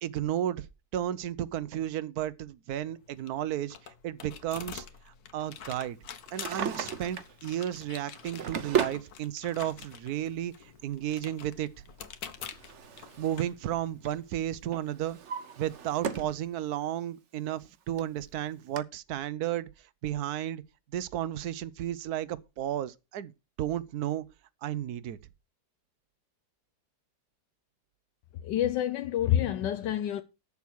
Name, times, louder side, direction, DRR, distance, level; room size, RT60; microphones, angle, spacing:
voice 1, 0.0-0.7 0.9-6.0 6.3-10.5 10.8-11.7 13.2-15.2 15.6-19.7 20.0-20.6 20.9-23.3 23.6-24.2 24.6-25.2, right 12 dB, 65° right, 1.2 m, -33 dB
sound 1, 2.9-14.6, left 7 dB, 60° left, 1.5 m, -47 dB
Drawer open or close, 6.2-7.4 8.1-9.0 10.1-10.2 12.0-13.5 13.8-14.2 14.7-16.4 16.8-16.9 17.6-17.7 18.0-18.1 18.8-18.9, right 7 dB, 50° right, 1.1 m, -35 dB
voice 2, 28.4-30.2, left 11 dB, 80° left, 1.4 m, -28 dB
8.8 x 7.2 x 6.1 m
omnidirectional pair, 1.9 m